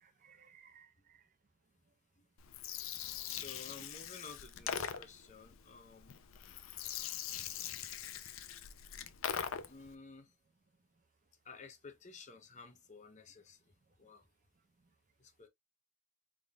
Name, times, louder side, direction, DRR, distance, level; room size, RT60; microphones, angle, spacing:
voice 1, 0.0-1.2 3.8-3.9, right 7 dB, 40° right, 0.4 m, -62 dB
Gurgling, 2.4-9.9, left 8 dB, 85° left, 0.5 m, -42 dB
voice 2, 3.3-6.3 9.7-10.3 11.4-13.7 14.0-14.3 15.2-15.5, left 4 dB, 35° left, 0.7 m, -53 dB
3.7 x 3.5 x 2.3 m
head